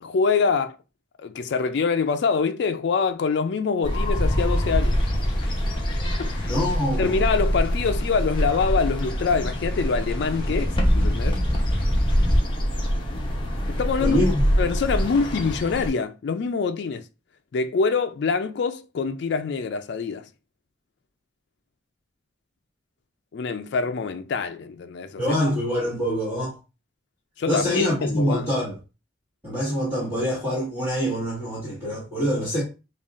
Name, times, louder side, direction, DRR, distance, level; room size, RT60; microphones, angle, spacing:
voice 1, 0.0-0.8 1.2-5.0 6.2-6.3 7.0-11.4 13.7-14.2 14.6-17.1 17.5-20.3 23.3-25.4 27.4-28.5, left 5 dB, 60° left, 0.3 m, -25 dB
sound 1, 3.8-15.9, equal, 25° left, 0.7 m, -25 dB
sound 2, 4.1-12.4, equal, 10° left, 2.2 m, -27 dB
voice 2, 6.5-7.2 14.0-14.4 25.2-26.6 27.5-28.7 29.4-32.6, equal, 10° right, 1.5 m, -25 dB
5.3 x 2.3 x 2.5 m
head